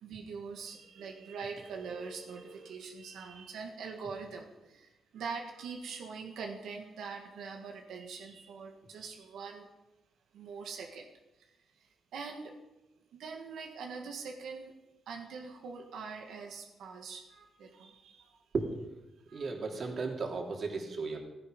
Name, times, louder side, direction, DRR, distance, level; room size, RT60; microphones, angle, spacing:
voice 1, 0.0-9.7 10.3-11.1 11.4-12.6 13.1-14.7 15.1-18.4 19.3-19.5, right 5 dB, 90° right, 2 dB, 1.7 m, -43 dB
voice 2, 19.3-21.2, right 4 dB, 50° right, 2 dB, 3.2 m, -35 dB
16.0 x 15.0 x 5.3 m, 1.0 s
cardioid pair, 120°, 0 cm